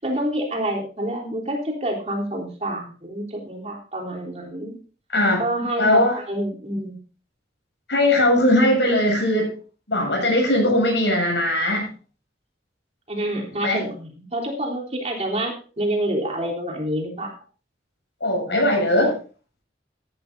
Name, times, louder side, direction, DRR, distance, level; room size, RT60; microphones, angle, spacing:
voice 1, 0.0-4.8 5.4-7.0 13.1-17.3, right 1 dB, 40° right, 0 dB, 3.5 m, -27 dB
voice 2, 5.8-6.2 7.9-9.5 9.9-11.9 13.6-13.8 18.2-19.1, left 1 dB, 90° left, 0 dB, 7.8 m, -19 dB
15.0 x 12.0 x 2.6 m, 0.37 s
head